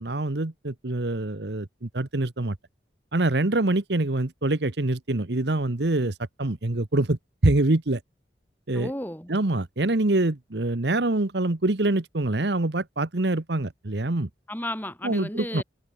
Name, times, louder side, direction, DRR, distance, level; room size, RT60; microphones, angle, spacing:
voice 1, 0.0-2.6 3.1-8.0 8.7-8.9 9.3-14.3 15.0-15.6, right 2 dB, 65° right, 1.2 m, -25 dB
voice 2, 8.7-9.3 14.5-15.6, left 1 dB, 10° left, 5.4 m, -33 dB
head